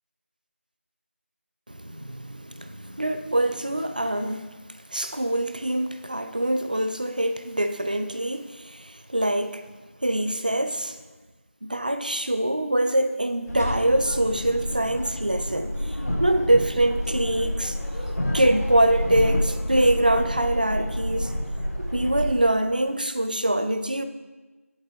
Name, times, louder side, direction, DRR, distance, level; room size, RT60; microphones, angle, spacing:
voice 1, 1.7-4.6 4.9-9.6 10.0-11.0 11.6-15.7 16.2-17.8 18.3-21.3 21.8-24.0, right 1 dB, 35° right, 0.4 m, -24 dB
sound 1, 13.5-22.4, left 1 dB, 80° left, 1.7 m, -29 dB
8.6 x 7.5 x 4.6 m
figure-of-eight pair, 175°, 8 cm